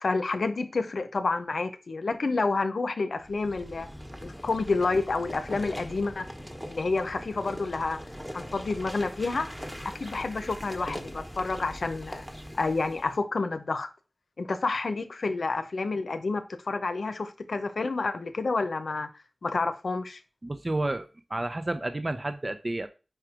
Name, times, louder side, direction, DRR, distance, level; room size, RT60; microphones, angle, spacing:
voice 1, 0.0-3.9 4.2-6.3 6.7-8.0 8.3-9.5 9.8-12.3 12.6-13.9 14.4-19.1 19.4-20.2, left 3 dB, 90° left, 0.7 m, -29 dB
sound 1, 3.2-13.2, equal, ahead, 1.1 m, -41 dB
voice 2, 20.4-22.9, right 2 dB, 40° right, 0.5 m, -31 dB
4.8 x 4.5 x 4.9 m
wide cardioid pair, 50°, 0 cm